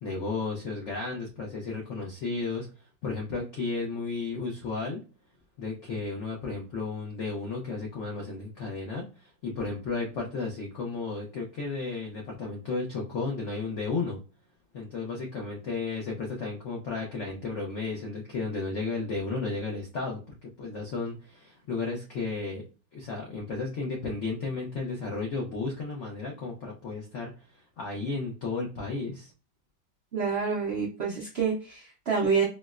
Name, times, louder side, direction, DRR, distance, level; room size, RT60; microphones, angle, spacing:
voice 1, 0.0-2.7 3.0-5.0 5.6-14.2 14.7-22.6 22.9-29.3, left 3 dB, 75° left, -1 dB, 0.6 m, -33 dB
voice 2, 30.1-32.4, right 5 dB, 75° right, -2 dB, 0.5 m, -27 dB
4.3 x 2.1 x 2.3 m, 0.34 s
omnidirectional pair, 2.0 m